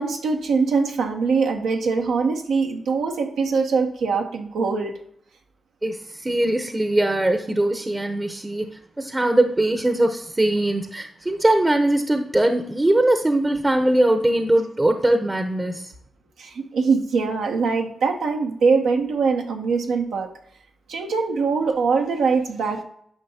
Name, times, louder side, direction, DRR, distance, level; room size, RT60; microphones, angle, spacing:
voice 1, 0.0-5.0 16.4-20.3 20.9-22.8, right 4 dB, 85° right, 1 dB, 0.8 m, -22 dB
voice 2, 5.8-8.7 9.0-15.9, right 1 dB, 25° right, 7 dB, 0.8 m, -21 dB
9.9 x 5.5 x 2.8 m, 0.66 s
supercardioid pair, 40°, 0 cm